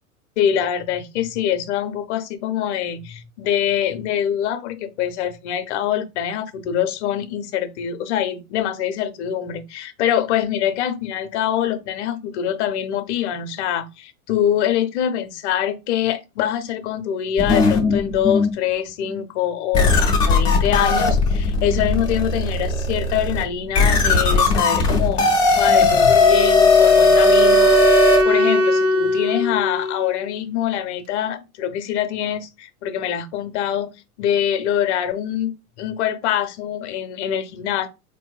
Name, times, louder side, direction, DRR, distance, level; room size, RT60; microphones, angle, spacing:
voice 1, 0.4-25.3 25.6-33.9 34.2-37.9, left 10 dB, 50° left, 0.6 m, -24 dB
sound 1, 17.4-18.5 19.1-19.2 19.7-28.2, left 3 dB, 15° left, 0.3 m, -17 dB
Wind instrument woodwind instrument, 26.2-30.3, left 2 dB, 55° right, 0.8 m, -20 dB
3.8 x 2.6 x 2.3 m
hypercardioid pair, 110°, 44 cm